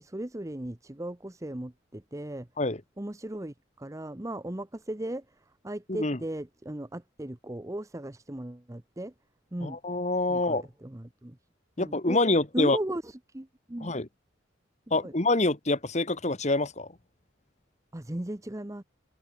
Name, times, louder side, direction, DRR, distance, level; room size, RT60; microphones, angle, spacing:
voice 1, 0.0-2.5 3.0-9.1 9.5-9.8 10.3-11.4 11.8-12.2 12.5-13.9 14.9-15.1 17.9-18.8, right 1 dB, 15° right, 0.8 m, -37 dB
voice 2, 9.6-10.6 11.8-12.8 13.8-14.1 14.9-16.9, left 2 dB, 35° left, 1.6 m, -26 dB
head